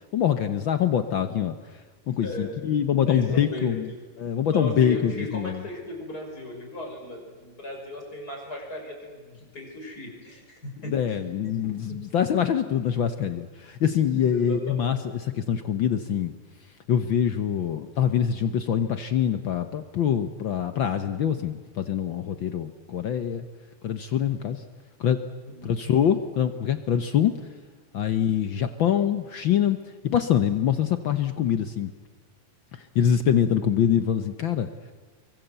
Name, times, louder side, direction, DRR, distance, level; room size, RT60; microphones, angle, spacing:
voice 1, 0.1-1.5 2.1-3.9 4.2-5.6 10.9-16.3 16.9-23.5 23.8-24.6 25.0-25.2 25.6-27.4 27.9-31.9 32.7-34.7, left 9 dB, 70° left, 9 dB, 1.1 m, -24 dB
voice 2, 2.2-2.5 3.1-3.8 4.5-11.5 11.9-12.0 14.1-14.8 25.5-25.7, left 1 dB, 30° left, 0 dB, 6.3 m, -36 dB
27.0 x 23.5 x 8.2 m, 1.4 s
omnidirectional pair, 3.4 m